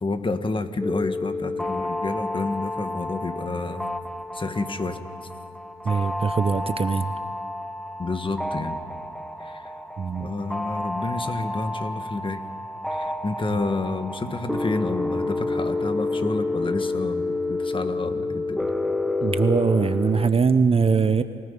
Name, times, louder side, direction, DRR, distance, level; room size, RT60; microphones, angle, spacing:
voice 1, 0.0-3.9 4.3-5.0 8.0-8.8 9.4-9.7 10.2-12.4 12.9-18.7, left 3 dB, 25° left, 9 dB, 1.4 m, -29 dB
sound 1, 0.8-20.3, left 2 dB, ahead, 0.8 m, -30 dB
voice 2, 5.8-7.1 10.0-10.3 19.2-21.2, right 5 dB, 30° right, 11 dB, 0.7 m, -21 dB
28.5 x 18.0 x 5.3 m, 2.5 s
cardioid pair, 90°, 20 cm